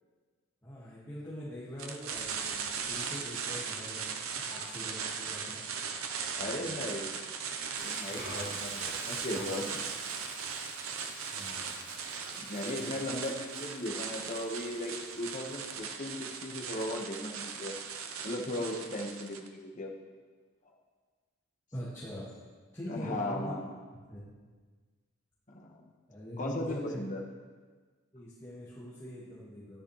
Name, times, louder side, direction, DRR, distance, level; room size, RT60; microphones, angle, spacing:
voice 1, 0.6-5.6 6.4-6.8 8.0-8.9 11.3-11.7 12.7-13.2 21.7-22.4 22.7-23.6 24.1-24.3 26.1-27.0 28.1-29.8, equal, 15° left, -10 dB, 1.9 m, -43 dB
sound 1, 1.8-19.5, right 6 dB, 85° right, 0.8 m, -38 dB
voice 2, 6.4-7.1 7.8-9.7 12.4-17.7 18.2-19.9 22.9-23.7 25.6-25.8 26.4-27.2, left 1 dB, 40° left, -1 dB, 1.4 m, -37 dB
Frying (food), 7.8-15.8, right 1 dB, 65° right, 3.8 m, -47 dB
13.0 x 10.5 x 3.3 m, 1.5 s
head